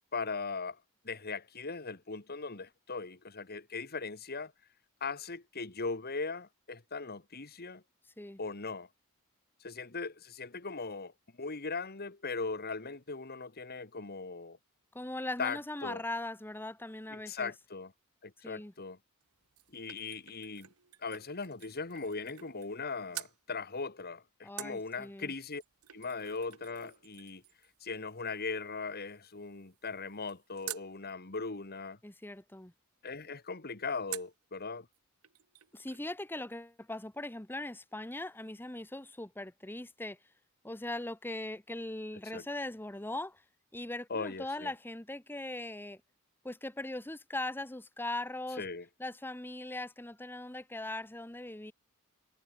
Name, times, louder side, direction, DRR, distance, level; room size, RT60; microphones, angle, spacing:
voice 1, 0.1-0.8 1.0-4.5 5.0-7.8 8.4-8.9 9.6-11.1 11.4-14.6 15.4-16.0 17.1-17.9 18.2-19.0 19.7-20.7 21.0-25.6 25.9-27.4 27.8-32.0 33.0-34.9 42.3-42.4 44.1-44.7 48.6-48.9, left 4 dB, 45° left, 1.8 m, -39 dB
voice 2, 14.9-17.5 18.4-18.7 24.4-25.3 32.0-32.7 35.7-40.2 40.6-43.4 43.7-46.0 46.4-48.6 49.0-51.7, left 2 dB, 10° left, 1.0 m, -40 dB
sound 1, 19.2-22.8 23.1-23.4 24.6-30.9 34.1-34.4 34.9-35.0 35.2-36.2 36.5-36.6, right 14 dB, 80° right, 1.8 m, -49 dB
head